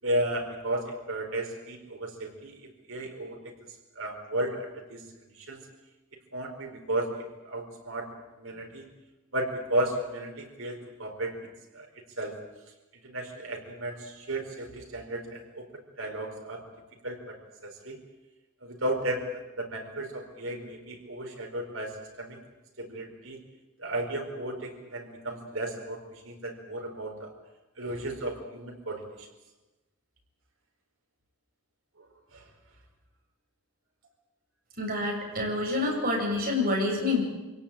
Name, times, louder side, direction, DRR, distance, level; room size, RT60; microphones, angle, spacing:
voice 1, 0.0-2.5 2.9-3.4 4.0-5.0 5.4-5.6 6.3-7.1 7.4-8.1 8.4-8.9 9.3-11.3 11.7-11.9 12.2-12.3 13.0-15.7 16.0-16.6 17.0-18.0 18.6-19.3 19.6-22.4 22.8-23.4 23.8-26.0 26.2-27.3 27.8-29.0 32.3-32.4, right 1 dB, 70° right, 3 dB, 4.8 m, -34 dB
voice 2, 34.8-37.2, left 2 dB, 45° right, -1 dB, 7.8 m, -27 dB
26.0 x 17.5 x 8.9 m, 1.1 s
head